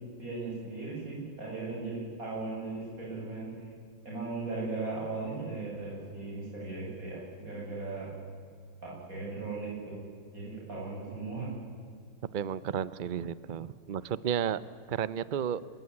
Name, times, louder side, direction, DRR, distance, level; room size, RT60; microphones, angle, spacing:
voice 1, 0.2-3.7 4.0-8.2 8.8-10.0 10.3-11.5, right 3 dB, 50° right, -4 dB, 8.4 m, -37 dB
voice 2, 12.3-14.6 14.9-15.6, right 8 dB, 90° right, 17 dB, 0.4 m, -32 dB
27.5 x 16.0 x 9.7 m, 2.2 s
omnidirectional pair, 1.9 m